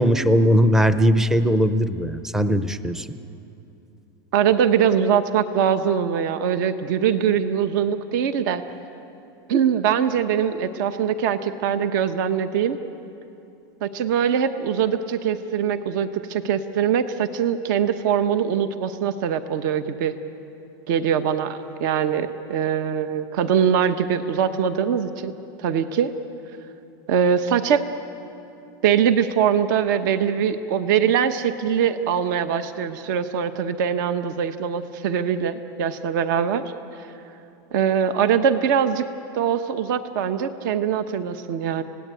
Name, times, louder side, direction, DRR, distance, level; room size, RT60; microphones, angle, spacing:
voice 1, 0.0-3.1, equal, 5° right, 12 dB, 0.6 m, -19 dB
voice 2, 4.3-8.6 9.5-12.8 13.8-20.2 20.9-25.3 25.6-26.1 27.1-27.8 28.8-36.6 37.7-39.0 39.3-41.8, right 8 dB, 60° right, 9 dB, 1.2 m, -22 dB
29.5 x 17.5 x 9.1 m, 2.8 s
supercardioid pair, 165°, 12 cm